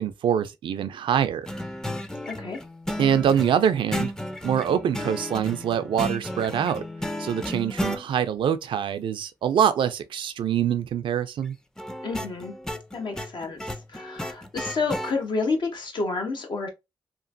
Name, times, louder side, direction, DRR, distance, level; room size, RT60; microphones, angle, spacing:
voice 1, 0.0-1.5 3.0-4.1 4.4-6.8 7.2-11.6, right 9 dB, 80° right, 0.4 m, -24 dB
sound 1, 1.5-8.0 11.8-15.1, left 1 dB, 5° left, 0.5 m, -33 dB
voice 2, 2.3-2.6 12.0-12.5 12.9-16.7, left 4 dB, 65° left, 1.0 m, -29 dB
2.9 x 2.4 x 2.5 m
cardioid pair, 55°, 8 cm